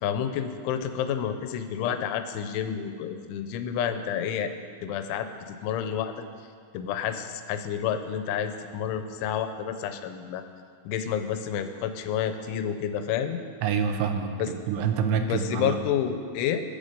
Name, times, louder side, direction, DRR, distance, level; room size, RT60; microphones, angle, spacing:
voice 1, 0.0-4.5 4.8-6.1 6.7-10.4 10.9-13.4 14.4-14.5 15.2-16.6, left 9 dB, 90° left, 8 dB, 3.2 m, -29 dB
voice 2, 13.6-15.8, right 6 dB, 85° right, 6 dB, 3.1 m, -27 dB
20.5 x 7.0 x 5.3 m, 2.1 s
omnidirectional pair, 5.3 m